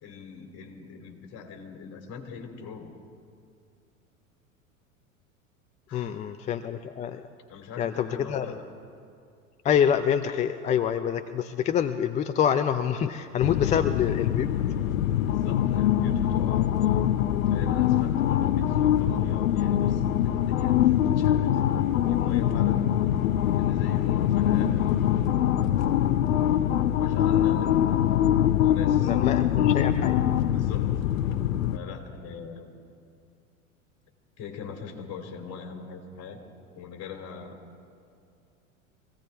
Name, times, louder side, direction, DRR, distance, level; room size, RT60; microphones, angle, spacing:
voice 1, 0.0-3.0 5.9-6.3 7.5-8.7 15.2-17.0 17.3-21.7 22.0-22.9 23.6-25.1 25.5-26.1 27.0-28.1 28.6-29.4 30.5-30.9 31.7-32.7 34.4-36.4 36.7-37.8, left 6 dB, 35° left, 3 dB, 3.1 m, -42 dB
voice 2, 5.9-7.2 7.8-8.5 9.6-14.5 29.0-30.2, left 8 dB, 20° left, 10 dB, 0.4 m, -26 dB
sound 1, 13.4-31.8, left 11 dB, 70° left, 0.8 m, -23 dB
24.5 x 17.0 x 3.5 m, 2.4 s
figure-of-eight pair, 85°, 42 cm